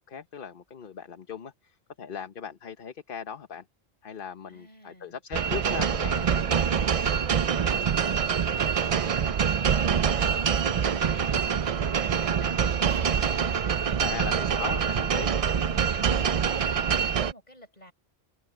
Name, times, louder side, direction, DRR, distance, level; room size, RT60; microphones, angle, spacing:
voice 1, 0.0-3.7 4.0-6.5 14.0-15.3, left 7 dB, 55° left, 1.1 m, -39 dB
voice 2, 4.5-5.2 7.4-14.3 14.8-15.3 15.7-17.9, equal, 40° left, 7.5 m, -50 dB
sound 1, 5.3-17.3, right 7 dB, 45° right, 0.5 m, -25 dB
omnidirectional pair, 1.1 m